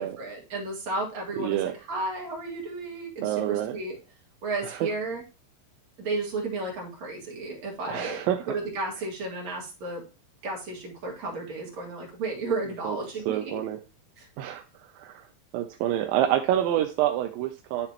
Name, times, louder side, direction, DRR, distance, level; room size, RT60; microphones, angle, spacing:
voice 1, 0.0-1.6 1.9-4.0 4.4-5.2 6.0-8.2 8.5-10.0 10.4-13.6 14.2-14.3, right 2 dB, 50° right, -1 dB, 3.0 m, -33 dB
voice 2, 1.4-1.7 3.2-3.8 4.6-4.9 7.9-8.5 12.8-13.0 13.3-13.8 14.4-15.3 15.5-17.9, right 12 dB, 80° right, 4 dB, 2.1 m, -27 dB
11.5 x 3.9 x 2.9 m, 0.32 s
omnidirectional pair, 4.6 m